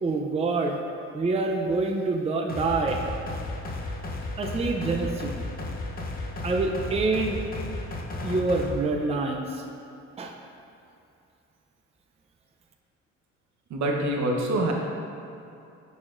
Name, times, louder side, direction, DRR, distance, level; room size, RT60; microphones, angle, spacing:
voice 1, 0.0-0.8 1.1-3.0 4.4-5.4 6.4-7.4 8.2-9.6 10.2-10.3, right 3 dB, 20° right, 1 dB, 0.5 m, -26 dB
sound 1, 2.5-8.7, left 2 dB, 30° left, 0.8 m, -34 dB
voice 2, 13.7-14.7, right 1 dB, 65° right, 0 dB, 0.9 m, -25 dB
10.5 x 4.2 x 2.5 m, 2.6 s
cardioid pair, 90°, 30 cm